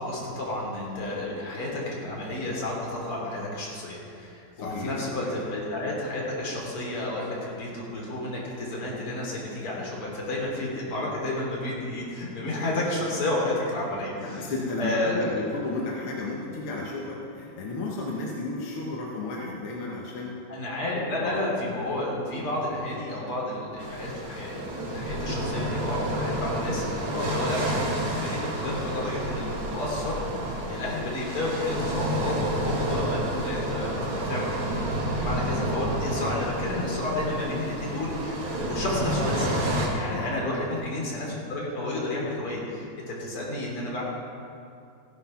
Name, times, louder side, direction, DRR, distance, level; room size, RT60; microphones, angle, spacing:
voice 1, 0.0-14.5 14.8-15.4 20.5-29.5 29.7-34.5 35.2-39.5 39.9-44.0, left 1 dB, 40° left, -3 dB, 3.9 m, -31 dB
voice 2, 4.6-5.4 14.0-20.3 21.2-21.4 27.1-27.4 40.1-40.4, left 3 dB, 55° left, -3 dB, 1.6 m, -33 dB
sound 1, 23.8-39.9, right 1 dB, 40° right, 2.3 m, -30 dB
16.0 x 11.0 x 5.8 m, 2.6 s
omnidirectional pair, 4.2 m